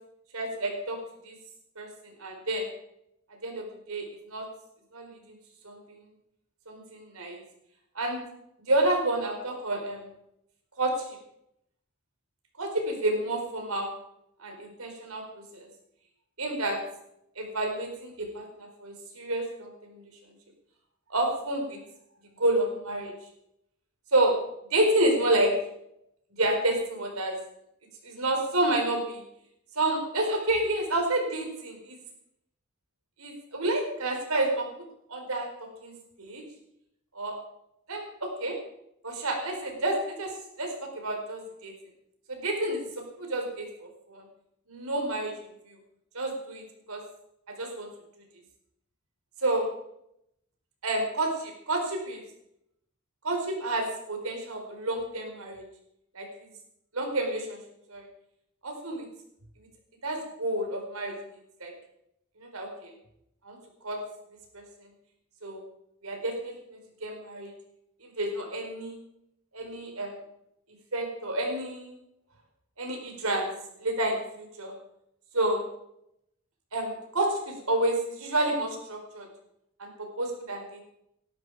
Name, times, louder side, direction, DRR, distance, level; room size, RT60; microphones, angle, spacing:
voice 1, 0.3-1.0 1.2-1.3 1.8-1.9 2.2-2.7 3.4-4.4 4.9-5.1 5.6-5.8 6.7-7.4 7.9-8.2 8.7-10.1 10.8-11.2 12.6-13.9 14.4-15.7 16.4-16.8 17.4-20.0 21.1-21.8 22.4-23.1 24.1-24.4 24.7-25.5 26.4-27.3 28.0-29.2 29.8-32.0 33.2-34.7 35.1-35.9 36.2-36.4 37.1-37.3 37.9-38.5 39.0-40.3 40.6-41.7 42.3-43.7 44.1-44.2 44.7-45.3 45.7-45.8 46.1-46.6 46.9-47.0 47.6-47.9 49.4-49.7 50.8-52.2 53.2-55.6 56.1-56.3 56.9-57.6 57.9-58.1 58.6-59.1 60.0-61.1 61.6-61.7 62.4-62.9 63.4-63.6 63.8-64.0 64.5-64.6 65.4-65.6 66.0-67.5 68.0-69.0 69.5-70.2 70.9-72.0 72.8-73.5 73.8-74.7 75.3-75.6 76.7-79.3 79.8-80.8, right 1 dB, 80° right, 3 dB, 4.5 m, -29 dB
19.0 x 12.5 x 4.9 m, 0.78 s
head